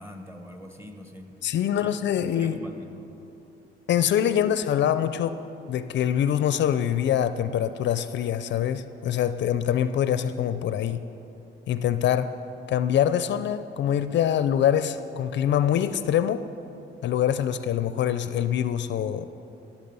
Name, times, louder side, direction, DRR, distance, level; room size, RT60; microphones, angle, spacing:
voice 1, 0.0-1.4 1.8-3.1, left 1 dB, 10° right, 4 dB, 1.4 m, -43 dB
voice 2, 1.4-2.6 3.9-5.4 5.7-11.0 11.7-12.3 12.7-16.4 17.0-19.3, left 10 dB, 65° left, 12 dB, 0.5 m, -24 dB
18.0 x 7.3 x 5.4 m, 2.9 s
cardioid pair, 90°, 20 cm